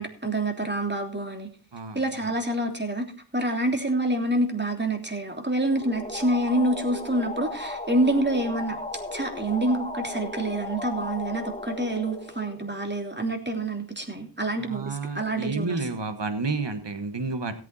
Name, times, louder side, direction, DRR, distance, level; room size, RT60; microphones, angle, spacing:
voice 1, 0.0-1.5 1.9-3.0 3.3-8.8 9.1-15.8, right 1 dB, 25° right, 3 dB, 3.3 m, -27 dB
voice 2, 1.7-2.3 14.6-17.5, right 3 dB, 85° right, 8 dB, 1.5 m, -31 dB
sound 1, 5.7-13.1, left 2 dB, 20° left, 2.0 m, -36 dB
17.5 x 8.3 x 4.3 m, 0.38 s
wide cardioid pair, 50°, 42 cm